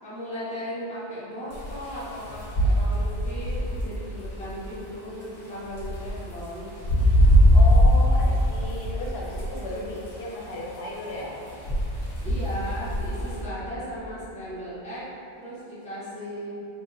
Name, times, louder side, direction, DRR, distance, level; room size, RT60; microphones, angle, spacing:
voice 1, 0.0-6.7 12.2-15.1 15.4-16.6, equal, 10° left, -12 dB, 0.8 m, -36 dB
sound 1, 1.5-1.8 2.3-4.3 5.7-6.3 6.8-8.0 8.3-9.6 11.6-13.4, equal, 55° left, 1.2 m, -21 dB
voice 2, 7.1-11.4, left 2 dB, 85° left, -3 dB, 0.8 m, -35 dB
3.3 x 2.7 x 2.6 m, 2.7 s
omnidirectional pair, 1.0 m